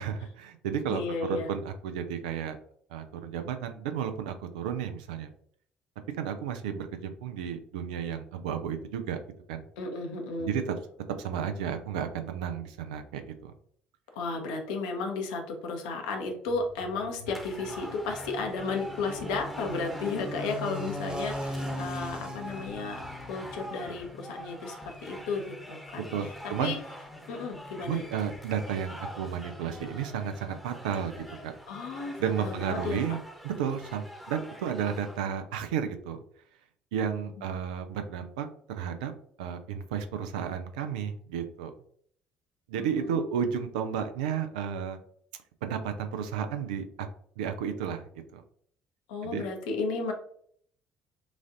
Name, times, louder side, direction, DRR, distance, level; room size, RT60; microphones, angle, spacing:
voice 1, 0.0-2.6 2.9-5.3 6.2-9.2 9.5-9.6 10.4-10.7 11.2-13.5 26.1-26.8 27.8-31.5 32.2-36.2 36.9-39.1 39.4-41.7 42.7-45.0 45.6-47.1 47.4-48.0 48.3-48.4 49.2-49.4, right 8 dB, 70° right, 8 dB, 0.5 m, -32 dB
voice 2, 0.9-1.5 9.8-10.6 14.1-23.0 23.3-26.8 27.3-28.0 31.7-33.0 42.8-43.1 49.1-50.1, left 3 dB, 70° left, 3 dB, 0.8 m, -34 dB
sound 1, 16.5-24.1, left 1 dB, 25° right, 1.3 m, -39 dB
sound 2, 17.3-35.3, equal, ahead, 1.0 m, -44 dB
6.2 x 2.5 x 2.6 m, 0.62 s
figure-of-eight pair, 50°, 4 cm